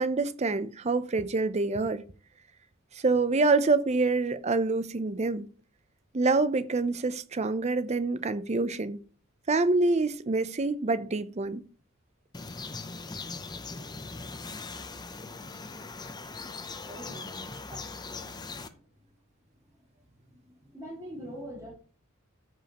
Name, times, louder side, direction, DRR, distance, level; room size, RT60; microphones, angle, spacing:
voice 1, 0.0-2.0 3.0-5.4 6.1-9.0 9.5-11.6, right 3 dB, 30° right, 0.5 m, -26 dB
sound 1, 12.3-18.7, left 3 dB, 20° left, 0.5 m, -40 dB
voice 2, 16.9-18.3 18.7-18.8 20.2-21.7, equal, 15° right, 4.1 m, -44 dB
14.0 x 5.2 x 2.9 m
head